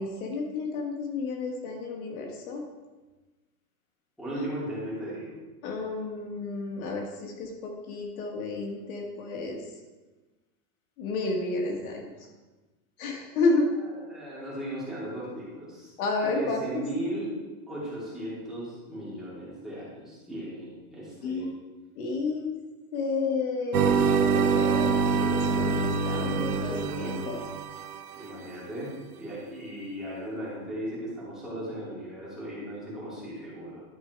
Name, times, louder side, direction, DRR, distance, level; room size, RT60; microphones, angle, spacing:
voice 1, 0.0-2.6 4.3-4.4 5.6-9.6 11.0-12.1 13.0-13.6 16.0-16.8 21.2-21.5 21.9-22.5 22.9-24.9 25.2-27.8, left 3 dB, 65° left, 1 dB, 1.8 m, -31 dB
voice 2, 4.2-5.3 13.8-15.9 16.2-21.5 28.1-33.8, right 1 dB, ahead, -10 dB, 3.0 m, -37 dB
sound 1, 23.7-28.0, right 5 dB, 85° right, 1.1 m, -25 dB
12.0 x 4.7 x 4.6 m, 1.2 s
supercardioid pair, 155°, 46 cm